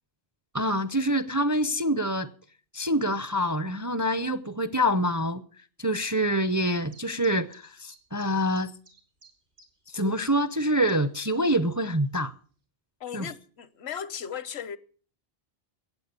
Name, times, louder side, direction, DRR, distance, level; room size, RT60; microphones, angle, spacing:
voice 1, 0.5-2.3 2.7-5.4 5.8-8.7 9.9-12.3 13.1-13.3, equal, 25° right, 0.4 m, -26 dB
sound 1, 6.7-11.3 11.5-11.6 12.2-12.3, right 2 dB, 85° right, 3.5 m, -55 dB
voice 2, 13.0-14.8, left 8 dB, 70° left, 1.0 m, -36 dB
16.0 x 8.9 x 6.8 m
omnidirectional pair, 1.1 m